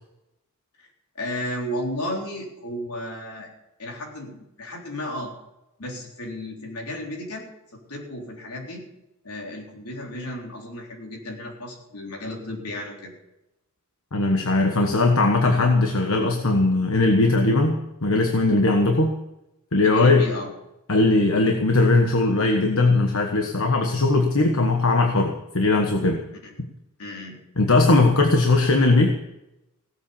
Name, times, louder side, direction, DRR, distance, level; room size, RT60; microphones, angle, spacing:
voice 1, 1.2-3.5 3.8-5.3 5.8-8.8 9.2-13.1 19.8-20.5 26.4-26.5 27.0-27.4, left 1 dB, 80° left, 0 dB, 3.7 m, -33 dB
voice 2, 14.1-19.2 19.7-20.2 20.9-26.2 27.6-29.1, left 2 dB, 65° left, 3 dB, 1.3 m, -19 dB
17.0 x 8.1 x 7.1 m, 0.91 s
head